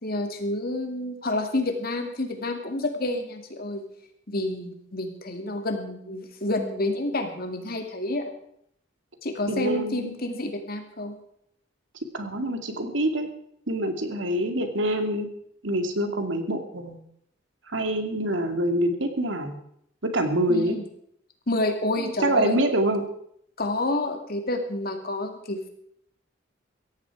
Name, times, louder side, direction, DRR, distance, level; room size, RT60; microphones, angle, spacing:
voice 1, 0.0-3.8 4.3-8.3 9.2-11.1 20.5-20.8 21.5-22.6 23.6-25.7, left 2 dB, 50° left, 5 dB, 2.5 m, -29 dB
voice 2, 9.5-10.1 12.1-13.3 13.7-15.3 15.6-17.0 17.7-19.6 20.0-20.8 22.0-23.0, right 1 dB, 80° right, 6 dB, 2.4 m, -25 dB
17.0 x 14.5 x 4.8 m, 0.70 s
head